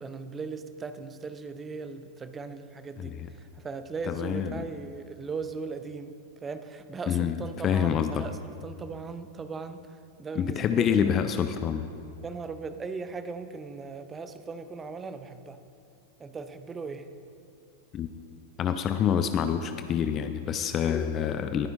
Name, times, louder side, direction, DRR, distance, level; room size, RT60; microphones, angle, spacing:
voice 1, 0.0-6.1 6.4-11.2 12.2-15.6 16.2-17.1, right 4 dB, 20° right, 10 dB, 0.6 m, -38 dB
voice 2, 4.1-4.6 7.1-7.4 7.6-8.3 10.4-11.9 17.9-18.1 18.6-21.7, left 8 dB, 30° left, 9 dB, 0.4 m, -27 dB
19.5 x 9.3 x 2.5 m, 2.6 s
figure-of-eight pair, 90°, 0 cm